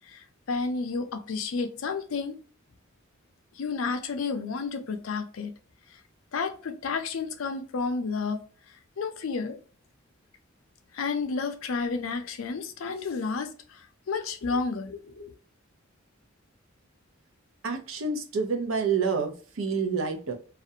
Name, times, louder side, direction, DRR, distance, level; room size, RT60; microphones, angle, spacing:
voice 1, 0.5-2.3 3.6-5.5 6.3-8.4 9.0-9.6 10.9-13.5 14.1-15.3, left 4 dB, 75° left, 0.4 m, -31 dB
voice 2, 17.6-20.3, right 5 dB, 75° right, 0.6 m, -28 dB
2.4 x 2.1 x 2.6 m
head